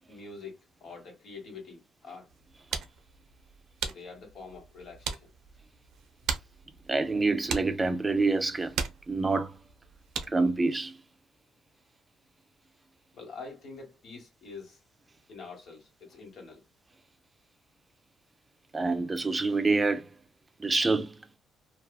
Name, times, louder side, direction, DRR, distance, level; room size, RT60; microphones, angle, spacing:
voice 1, 0.1-2.3 3.8-5.3 13.1-14.8 15.3-16.6, left 4 dB, 65° left, 1.3 m, -46 dB
sound 1, 2.3-10.6, right 6 dB, 85° right, 0.4 m, -39 dB
voice 2, 6.9-8.8 9.1-9.6 10.3-11.0 18.7-20.1 20.6-21.4, right 3 dB, 25° right, 0.4 m, -27 dB
2.7 x 2.3 x 2.3 m
cardioid pair, 90°, 0 cm